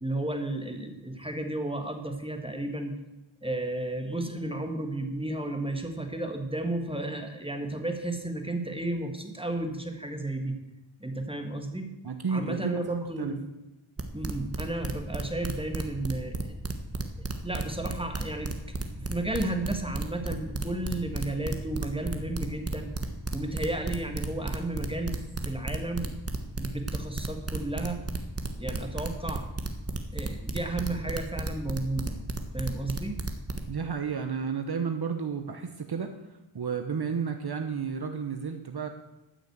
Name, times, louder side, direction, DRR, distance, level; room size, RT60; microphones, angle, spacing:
voice 1, 0.0-2.9 3.4-10.6 11.0-11.9 12.3-13.4 14.1-16.5 17.4-18.5 18.9-22.9 23.3-25.2 25.5-26.1 26.6-28.0 28.6-29.5 30.1-32.2 32.5-33.2, right 2 dB, 10° right, 5 dB, 1.7 m, -33 dB
voice 2, 12.0-13.3 33.7-36.2 36.5-38.9, right 6 dB, 50° right, 6 dB, 1.0 m, -32 dB
sound 1, 14.0-33.6, right 3 dB, 30° right, 1.4 m, -32 dB
13.5 x 6.4 x 8.0 m, 0.95 s
wide cardioid pair, 85°, 48 cm